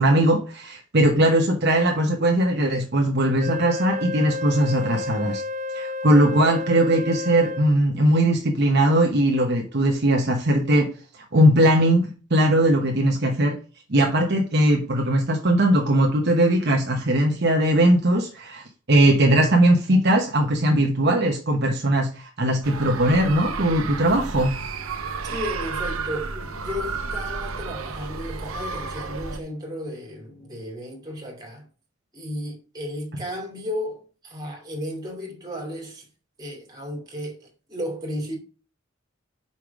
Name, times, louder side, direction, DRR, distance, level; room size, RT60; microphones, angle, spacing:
voice 1, 0.0-5.4 5.7-10.9 11.2-13.6 13.9-24.5, right 1 dB, 55° right, 1.0 m, -20 dB
Wind instrument woodwind instrument, 3.4-7.8, left 2 dB, 35° right, 0.6 m, -31 dB
sound 1, 22.6-29.4, right 4 dB, 90° right, 0.9 m, -32 dB
voice 2, 25.2-31.7 32.1-36.0 36.4-38.4, equal, 20° right, 2.8 m, -34 dB
5.7 x 5.0 x 6.0 m
head